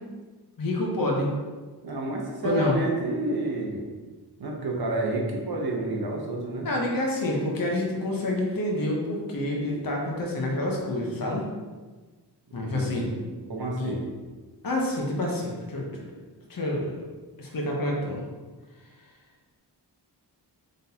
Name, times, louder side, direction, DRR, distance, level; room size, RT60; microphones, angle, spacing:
voice 1, 0.6-1.3 2.4-2.8 6.6-11.4 12.5-13.1 13.8-14.0 14.6-16.0 16.5-17.0 17.4-18.2, left 1 dB, 55° left, -2 dB, 0.8 m, -28 dB
voice 2, 1.8-3.9 4.4-6.7 12.6-14.0, right 2 dB, 60° right, -1 dB, 0.9 m, -30 dB
3.8 x 3.7 x 2.8 m, 1.3 s
wide cardioid pair, 75°, 42 cm